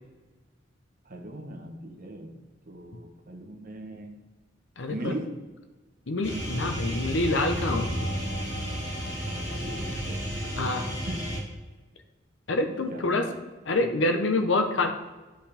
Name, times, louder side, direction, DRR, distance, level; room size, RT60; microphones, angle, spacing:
voice 1, 1.0-2.4 2.6-4.1 4.9-5.3 9.2-10.3 11.1-11.4 12.6-13.3, right 1 dB, 50° right, 3 dB, 1.1 m, -39 dB
voice 2, 4.8-5.1 6.1-8.1 10.6-10.9 12.5-13.3 13.7-14.9, left 2 dB, 75° left, 6 dB, 0.9 m, -26 dB
sound 1, 6.2-11.4, equal, 15° left, 2.4 m, -32 dB
12.0 x 5.2 x 3.5 m, 1.2 s
head